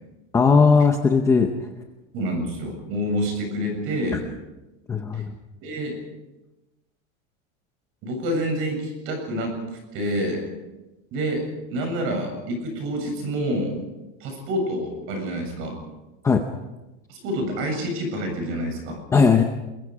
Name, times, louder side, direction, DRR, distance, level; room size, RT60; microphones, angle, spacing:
voice 1, 0.3-1.5 4.1-4.2 4.9-5.3 16.2-16.5 19.1-19.4, left 5 dB, 10° left, 4 dB, 0.7 m, -17 dB
voice 2, 2.1-4.2 5.1-5.2 5.6-6.0 8.0-10.5 11.1-11.4 11.7-13.8 14.2-15.8 17.1-19.0, equal, 35° right, 3 dB, 7.5 m, -27 dB
29.0 x 22.5 x 4.9 m, 1.1 s
supercardioid pair, 180°, 37 cm